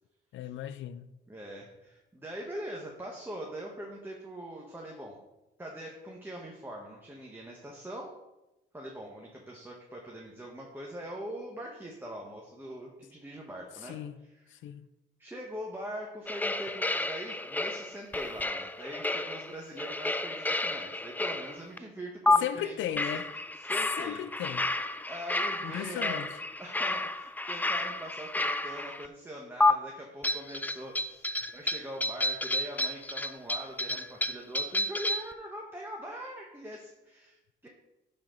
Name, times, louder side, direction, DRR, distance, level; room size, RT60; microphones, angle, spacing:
voice 1, 0.3-1.1 13.8-14.2 14.5-14.9 22.4-23.3 24.0-24.6 25.6-26.3, left 11 dB, 75° left, 0.5 m, -36 dB
voice 2, 1.3-5.2 5.6-8.1 8.7-14.6 15.2-23.2 23.6-24.2 25.1-26.3 26.6-37.7, equal, 10° right, 1.2 m, -42 dB
sound 1, 16.3-21.8 22.3-22.4 23.0-29.1 29.6-29.7 30.2-35.3, left 2 dB, 10° left, 0.4 m, -31 dB
11.5 x 4.4 x 3.9 m
cardioid pair, 90°, 20 cm